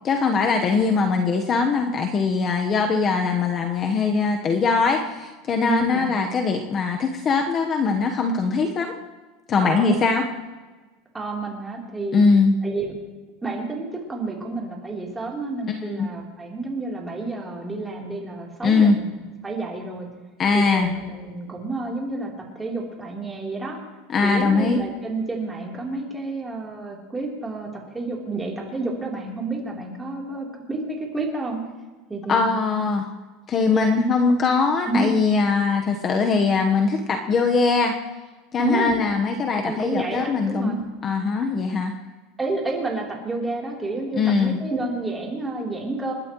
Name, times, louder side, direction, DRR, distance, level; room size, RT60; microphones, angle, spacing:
voice 1, 0.0-8.9 9.5-10.2 12.1-12.6 15.7-16.1 18.6-19.0 20.4-20.9 24.1-24.8 32.3-33.1 33.5-37.9 38.5-40.8 41.0-41.9 44.1-44.6, left 4 dB, 25° left, 4 dB, 1.1 m, -21 dB
voice 2, 5.6-6.1 9.6-10.3 11.1-12.3 12.6-12.9 13.4-19.1 19.4-20.1 20.5-23.8 24.2-31.6 32.1-32.5 33.7-34.0 34.9-35.1 38.6-39.0 39.6-40.8 42.4-46.1, right 2 dB, 10° right, -2 dB, 3.4 m, -30 dB
29.5 x 12.0 x 3.1 m, 1.3 s
supercardioid pair, 145°, 0 cm